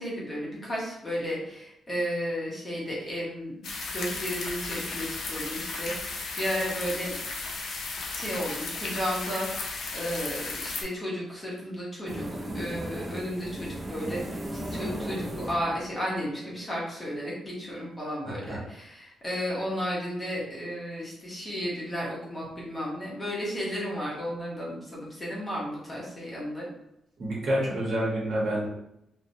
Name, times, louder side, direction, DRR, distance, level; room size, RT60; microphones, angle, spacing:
voice 1, 0.0-7.1 8.1-26.7, equal, 20° left, -6 dB, 0.8 m, -33 dB
sound 1, 3.6-10.8, left 3 dB, 70° left, 0.5 m, -35 dB
sound 2, 12.1-16.7, right 1 dB, 20° right, 0.4 m, -36 dB
voice 2, 18.2-18.6 27.2-28.7, right 1 dB, 50° right, -5 dB, 0.9 m, -28 dB
2.6 x 2.1 x 2.7 m, 0.82 s
cardioid pair, 125°, 0 cm